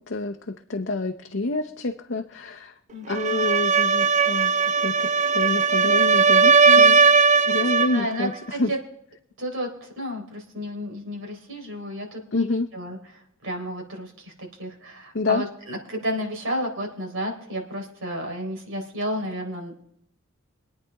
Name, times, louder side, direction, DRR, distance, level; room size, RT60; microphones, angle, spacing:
voice 1, 0.0-2.7 3.1-4.5 4.8-5.1 5.3-7.0 7.5-8.7 12.3-12.7 15.1-15.4, left 3 dB, 60° left, 4 dB, 0.8 m, -27 dB
voice 2, 2.9-3.4 6.6-7.0 7.6-8.8 9.4-13.0 13.4-19.8, equal, 85° right, 1 dB, 4.0 m, -32 dB
sound 1, 3.1-8.0, right 5 dB, 35° right, 0.4 m, -18 dB
25.0 x 9.3 x 3.5 m, 0.70 s
head